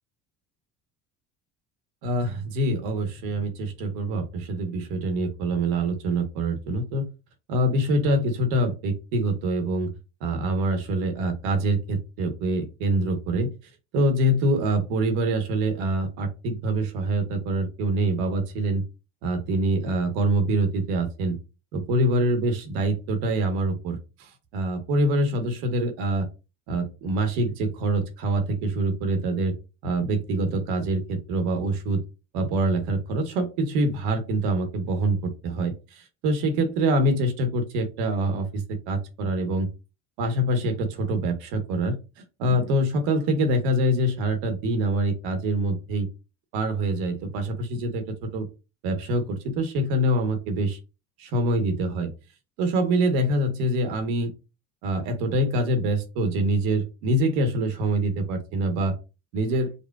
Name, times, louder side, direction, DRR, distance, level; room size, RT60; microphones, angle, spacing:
voice 1, 2.0-7.1 7.5-9.9 10.2-13.5 13.9-18.8 19.2-21.4 21.7-26.3 26.7-29.5 29.8-32.0 32.3-39.7 40.2-46.1 46.5-48.5 48.8-50.8 51.2-52.1 52.6-54.3 54.8-58.9 59.3-59.7, right 1 dB, 75° right, 6 dB, 1.0 m, -25 dB
5.2 x 2.2 x 2.3 m, 0.29 s
supercardioid pair, 75°, 39 cm